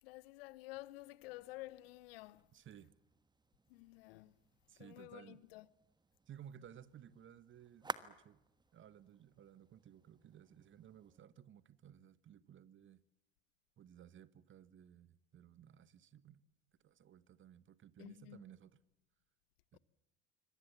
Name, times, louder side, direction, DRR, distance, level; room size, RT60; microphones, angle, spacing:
voice 1, 0.0-2.5 3.7-4.4 4.8-5.7 18.0-18.4 19.7-19.8, left 19 dB, 65° left, 1.0 m, -51 dB
sound 1, 1.2-11.2, right 3 dB, 15° right, 1.3 m, -54 dB
voice 2, 2.5-2.9 4.7-5.4 6.3-8.4 8.7-13.0 13.8-16.4 16.8-18.7 19.7-19.8, right 9 dB, 40° right, 1.4 m, -58 dB
26.5 x 25.0 x 7.4 m
figure-of-eight pair, 65°, 32 cm